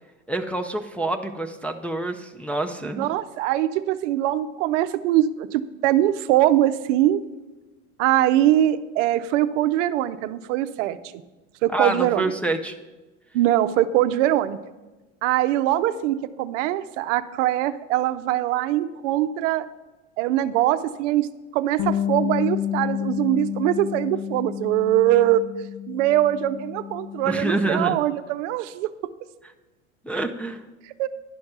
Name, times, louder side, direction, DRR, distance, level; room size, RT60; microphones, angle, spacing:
voice 1, 0.3-3.1 11.7-12.8 27.3-28.0 30.0-30.6, right 2 dB, 5° left, 3 dB, 0.5 m, -26 dB
voice 2, 3.0-7.2 8.0-11.0 11.6-12.3 13.3-14.6 15.2-19.7 20.2-21.3 21.5-25.4 25.9-28.9 31.0-31.1, right 13 dB, 65° right, 12 dB, 0.6 m, -22 dB
Bass guitar, 21.8-28.0, left 10 dB, 60° left, 0.6 m, -30 dB
11.0 x 5.2 x 5.9 m, 1.1 s
hypercardioid pair, 100°, 39 cm